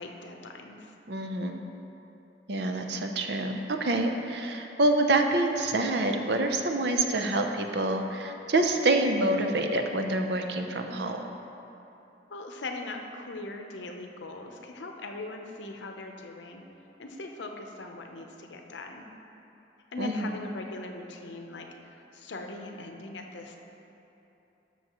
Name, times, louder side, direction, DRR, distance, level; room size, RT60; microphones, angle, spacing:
voice 1, 0.0-0.9 12.3-16.6 17.0-19.1 19.9-23.6, left 2 dB, 80° left, 3 dB, 0.7 m, -40 dB
voice 2, 1.1-1.6 2.5-11.2 20.0-20.3, right 2 dB, 65° right, 5 dB, 0.6 m, -27 dB
13.0 x 6.2 x 3.0 m, 2.9 s
head